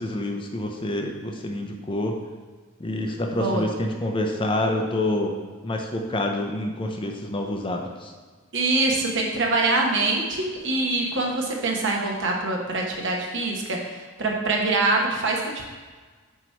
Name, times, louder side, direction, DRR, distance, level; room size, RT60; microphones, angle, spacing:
voice 1, 0.0-2.2 2.8-5.3 5.6-8.1, left 1 dB, 25° left, 3 dB, 0.5 m, -27 dB
voice 2, 8.5-15.6, right 2 dB, 60° right, 0 dB, 1.0 m, -24 dB
8.1 x 3.0 x 4.5 m, 1.5 s
head